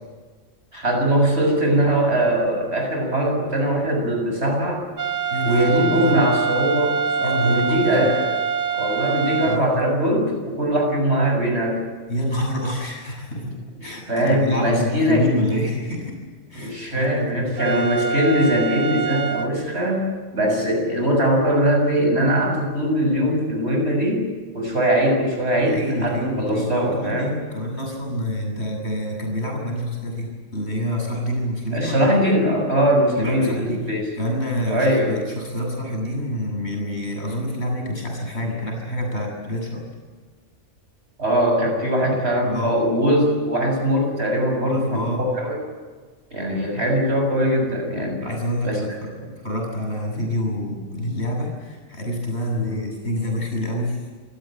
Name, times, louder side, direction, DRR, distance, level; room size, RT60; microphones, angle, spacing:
voice 1, 0.7-4.8 5.4-8.3 8.7-11.8 13.4-13.5 14.1-15.3 16.6-27.3 31.7-34.1 34.7-35.2 41.2-45.1 45.3-45.6 46.3-48.2 48.6-48.8 52.5-52.9, equal, 60° right, 2 dB, 7.3 m, -21 dB
sound 1, 5.0-9.6 17.6-19.5, right 6 dB, 45° right, 1.1 m, -25 dB
voice 2, 5.3-6.2 7.2-8.1 9.4-9.8 12.1-13.5 13.8-16.2 16.5-17.8 25.5-32.1 33.2-33.9 34.2-39.9 42.4-42.7 44.6-45.3 48.2-54.1, equal, 60° left, 0 dB, 7.9 m, -27 dB
28.0 x 17.0 x 9.1 m, 1.5 s
omnidirectional pair, 1.2 m